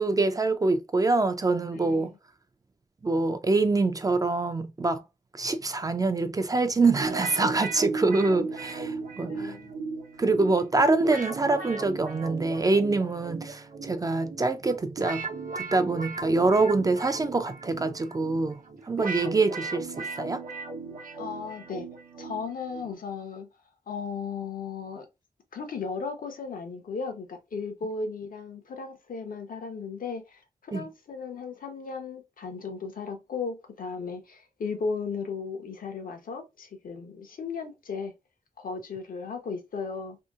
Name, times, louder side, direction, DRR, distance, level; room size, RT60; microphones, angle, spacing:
voice 1, 0.0-2.1 3.0-5.0 5.3-9.6 10.2-15.3 15.6-18.6 18.9-20.4 30.7-30.9, right 3 dB, 25° right, 0.4 m, -25 dB
voice 2, 1.7-2.2 9.3-9.7 21.2-21.9 22.2-23.5 23.9-25.1 25.5-38.1 38.6-40.2, left 5 dB, 75° left, 0.8 m, -36 dB
sound 1, 7.0-22.9, right 4 dB, 75° right, 0.7 m, -37 dB
2.8 x 2.6 x 2.3 m
wide cardioid pair, 120°, 14 cm